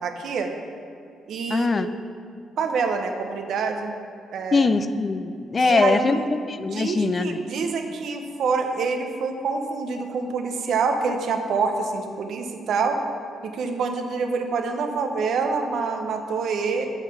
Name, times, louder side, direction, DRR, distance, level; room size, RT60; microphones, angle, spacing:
voice 1, 0.0-0.5 1.3-1.9 2.6-4.0 4.3-4.7 5.6-6.2 6.7-13.0 13.4-16.9, right 4 dB, 70° right, 5 dB, 0.8 m, -26 dB
voice 2, 1.5-1.9 4.5-7.4, left 3 dB, 35° left, 11 dB, 0.3 m, -22 dB
6.4 x 5.8 x 6.1 m, 2.4 s
cardioid pair, 90°, 0 cm